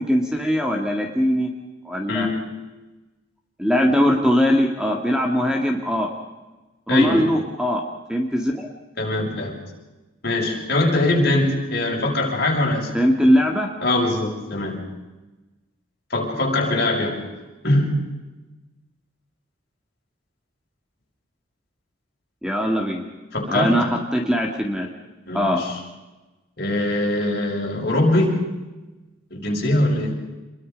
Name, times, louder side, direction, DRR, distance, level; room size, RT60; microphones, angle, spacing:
voice 1, 0.0-1.5 1.8-2.3 3.6-6.1 6.9-7.8 8.1-8.7 12.9-13.7 22.4-23.1 23.5-24.9 25.3-25.6, equal, 5° right, 2 dB, 2.0 m, -20 dB
voice 2, 6.9-7.3 9.0-9.6 10.2-12.9 13.8-14.8 16.1-17.3 17.6-18.0 23.3-23.8 25.3-25.7 26.6-28.4 29.3-30.1, left 1 dB, 50° left, -1 dB, 6.4 m, -22 dB
28.0 x 22.0 x 5.3 m, 1.1 s
head